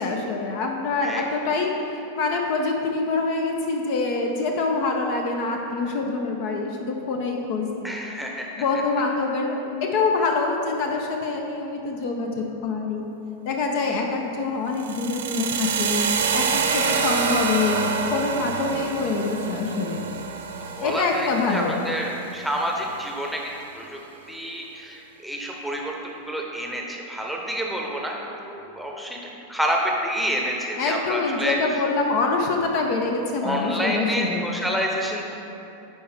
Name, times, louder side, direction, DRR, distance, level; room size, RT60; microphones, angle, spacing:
voice 1, 0.0-1.7 2.2-8.0 8.6-13.0 13.5-20.0 20.8-21.7 30.8-34.4, left 3 dB, 45° left, 2 dB, 0.6 m, -25 dB
voice 2, 7.8-8.5 20.8-24.0 24.3-29.2 29.5-31.8 33.4-35.3, equal, ahead, -1 dB, 0.9 m, -28 dB
sound 1, 14.7-22.8, right 5 dB, 65° right, 0.6 m, -27 dB
9.4 x 4.7 x 3.4 m, 2.9 s
figure-of-eight pair, 90°, 0 cm